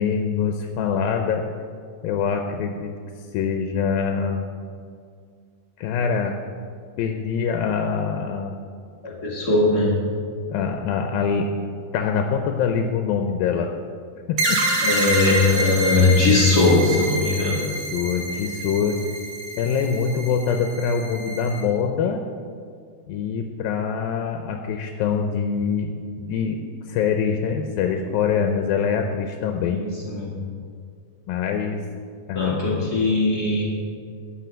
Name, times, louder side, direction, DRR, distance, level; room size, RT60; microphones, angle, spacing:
voice 1, 0.0-1.4 2.0-2.9 3.3-4.5 5.8-6.4 7.0-8.6 10.5-11.5 11.9-13.7 14.3-14.6 15.9-16.3 16.8-17.1 17.4-17.5 17.9-19.0 19.6-22.2 23.1-25.9 26.2-26.6 26.9-29.8 31.3-31.8 32.3-32.6, left 6 dB, 80° left, 4 dB, 2.4 m, -24 dB
voice 2, 9.0-9.9 14.8-17.6 29.7-30.3 32.3-33.7, left 3 dB, 45° left, -4 dB, 1.3 m, -20 dB
sound 1, 14.4-21.6, right 1 dB, 60° right, 2.8 m, -27 dB
12.5 x 5.6 x 7.4 m, 2.1 s
omnidirectional pair, 4.2 m